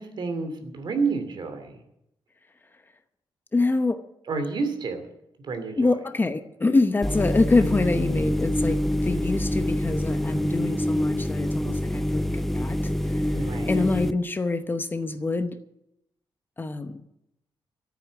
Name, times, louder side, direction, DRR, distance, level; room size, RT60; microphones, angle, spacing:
voice 1, 0.0-1.8 4.3-5.0 5.4-6.0 13.3-13.9, right 4 dB, 60° right, 7 dB, 2.7 m, -29 dB
voice 2, 3.5-4.0 5.8-13.2 13.6-15.6 16.6-17.0, left 3 dB, 20° left, 9 dB, 0.8 m, -25 dB
sound 1, 7.0-14.1, left 1 dB, 5° left, 0.4 m, -26 dB
13.5 x 9.0 x 8.3 m, 0.81 s
wide cardioid pair, 150°, 9 cm